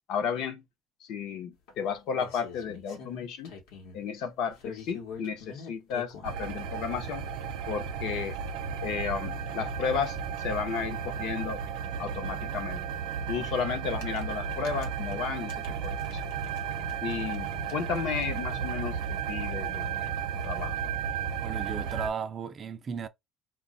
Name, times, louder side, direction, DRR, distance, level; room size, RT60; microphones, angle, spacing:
voice 1, 0.1-0.6 1.0-3.5 3.9-7.3 7.7-8.4 8.8-11.6 12.0-12.8 13.3-16.2 17.0-20.1 20.4-20.8, left 6 dB, 55° left, 0.6 m, -33 dB
sound 1, 1.7-4.0 4.5-6.4 7.3-7.4 7.8-7.9 8.1-8.2 8.5-8.6 10.5-10.6 10.9-11.0 12.9-13.1 13.8-16.6 16.9-18.5, left 5 dB, 80° left, 0.9 m, -46 dB
sound 2, 6.2-22.1, right 7 dB, 90° right, 0.6 m, -34 dB
voice 2, 21.4-23.1, right 6 dB, 30° right, 0.3 m, -35 dB
2.2 x 2.0 x 3.6 m
cardioid pair, 170°, 0 cm